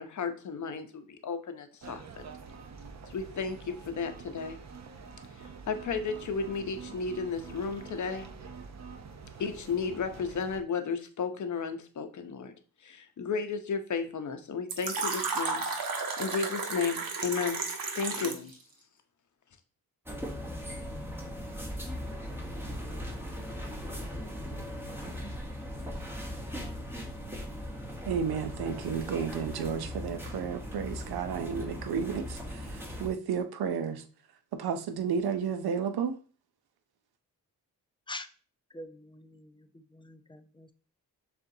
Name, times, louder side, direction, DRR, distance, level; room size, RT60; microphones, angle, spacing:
voice 1, 0.0-2.2 3.1-4.6 5.7-8.3 9.4-12.5 12.8-15.7 16.2-17.6 17.9-18.5, left 5 dB, 50° left, 0.7 m, -33 dB
sound 1, 1.8-10.6, right 5 dB, 45° right, 0.7 m, -46 dB
Fill (with liquid), 14.7-18.5, right 4 dB, 70° right, 0.9 m, -33 dB
sound 2, 20.1-33.1, equal, 5° right, 1.0 m, -39 dB
voice 2, 28.1-34.0 34.5-36.2, right 6 dB, 85° right, 0.6 m, -32 dB
voice 3, 38.7-40.7, left 2 dB, 15° left, 0.4 m, -45 dB
6.5 x 2.5 x 2.7 m
cardioid pair, 70°, 37 cm